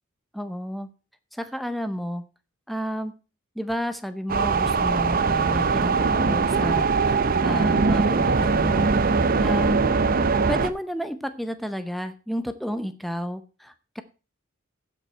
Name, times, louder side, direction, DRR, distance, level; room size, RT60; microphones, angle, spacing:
voice 1, 0.3-0.9 1.3-2.2 2.7-3.1 3.6-8.9 9.2-9.8 10.5-14.0, equal, ahead, 10 dB, 0.8 m, -31 dB
sound 1, 4.3-10.7, right 4 dB, 45° right, 0.6 m, -21 dB
15.5 x 5.4 x 4.4 m, 0.34 s
head